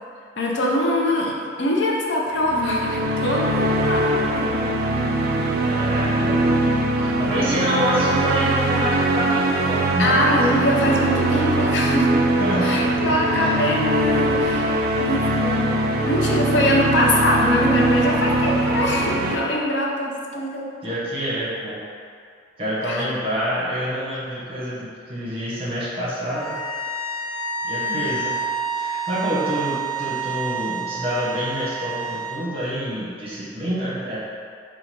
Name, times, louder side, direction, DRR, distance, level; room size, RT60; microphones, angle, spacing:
voice 1, 0.4-4.6 10.0-12.1 12.6-15.7 16.0-20.7 22.8-23.1 27.8-28.0, left 1 dB, 70° left, -2 dB, 0.6 m, -23 dB
sound 1, 2.4-19.4, right 1 dB, 55° right, 0.3 m, -22 dB
voice 2, 5.6-10.2 10.5-10.9 12.4-12.8 13.3-13.5 20.8-21.8 22.6-26.6 27.6-28.3 28.8-34.2, equal, 30° right, -8 dB, 1.1 m, -27 dB
sound 2, 26.3-32.4, right 3 dB, 5° left, 0.5 m, -28 dB
3.9 x 2.4 x 4.3 m, 2.3 s
head